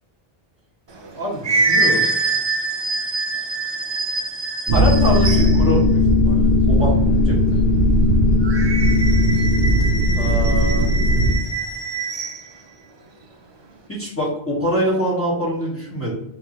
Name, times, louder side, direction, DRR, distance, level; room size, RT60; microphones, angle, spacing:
sound 1, 0.9-5.7 8.4-12.4, right 3 dB, 40° right, 0.4 m, -24 dB
voice 1, 1.1-2.1 4.7-7.0 7.2-7.6 10.1-10.9 13.9-16.1, equal, 15° left, -5 dB, 1.4 m, -24 dB
sound 2, 4.7-11.3, left 1 dB, 70° right, 0.8 m, -17 dB
4.1 x 3.7 x 2.9 m, 0.88 s
omnidirectional pair, 1.0 m